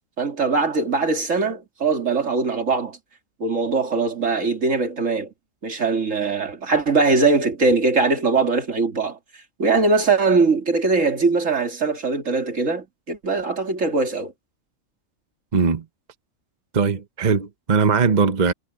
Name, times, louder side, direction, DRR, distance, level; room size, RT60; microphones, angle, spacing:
voice 1, 0.2-3.0 3.4-5.3 5.6-9.2 9.6-14.3, right 4 dB, 65° right, 2.8 m, -21 dB
voice 2, 15.5-15.8 16.7-18.5, right 5 dB, 35° right, 0.9 m, -20 dB
omnidirectional pair, 1.4 m